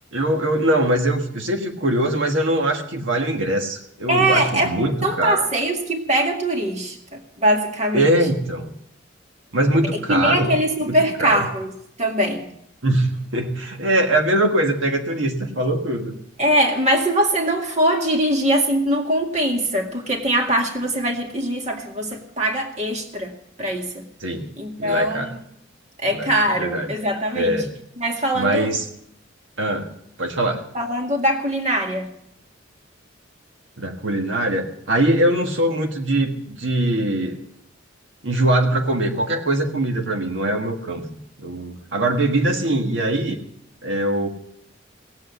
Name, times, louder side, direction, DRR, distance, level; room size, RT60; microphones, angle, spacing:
voice 1, 0.1-5.4 7.9-8.7 9.5-10.5 10.9-11.5 12.8-16.1 24.2-24.5 24.8-25.3 26.1-26.3 26.5-26.9 27.3-27.7 28.3-28.8 29.6-29.9 30.2-30.6 33.8-37.4 38.2-41.0 41.4-43.4 43.8-44.3, right 1 dB, 75° right, 3 dB, 1.6 m, -22 dB
voice 2, 4.1-4.7 5.0-8.1 9.9-12.5 16.4-23.3 23.6-24.0 24.6-25.4 26.0-27.6 28.0-28.7 30.7-32.1, right 1 dB, 35° right, 2 dB, 2.0 m, -22 dB
18.5 x 8.2 x 8.2 m, 0.75 s
head